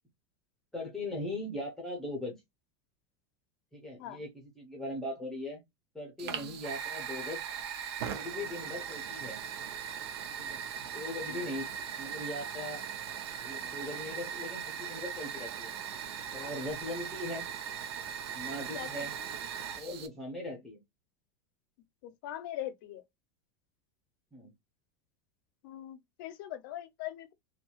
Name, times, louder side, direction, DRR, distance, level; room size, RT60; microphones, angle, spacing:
voice 1, 0.7-2.3 3.7-5.6 5.9-7.4 8.1-9.4 10.4-11.7 12.0-12.8 13.4-15.7 16.3-17.4 18.3-19.1 19.8-20.8 24.3-24.5, left 1 dB, 5° left, 0.7 m, -39 dB
voice 2, 6.2-6.6 16.4-16.5 18.7-18.9 22.0-23.0 25.6-27.3, left 12 dB, 55° left, 0.5 m, -41 dB
Fire, 6.2-20.1, right 8 dB, 90° right, 0.7 m, -39 dB
2.7 x 2.3 x 2.8 m
supercardioid pair, 170°, 13 cm